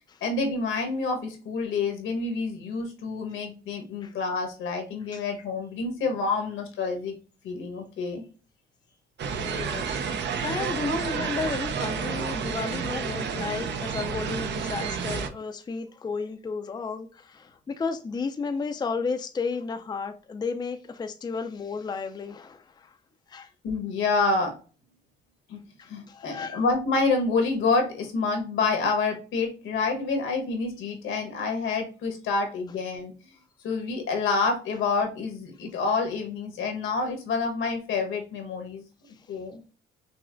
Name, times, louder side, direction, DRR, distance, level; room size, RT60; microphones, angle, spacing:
voice 1, 0.2-7.1 7.4-8.2 23.6-24.6 25.5-25.6 25.9-33.1 33.6-38.8 39.3-39.6, left 4 dB, 80° left, 1.2 m, -28 dB
sound 1, 9.2-15.3, right 6 dB, 60° right, 0.6 m, -30 dB
voice 2, 9.3-22.9 23.3-23.5 25.8-26.6, left 4 dB, 20° left, 0.4 m, -33 dB
5.4 x 2.1 x 2.5 m
cardioid pair, 90°, 20 cm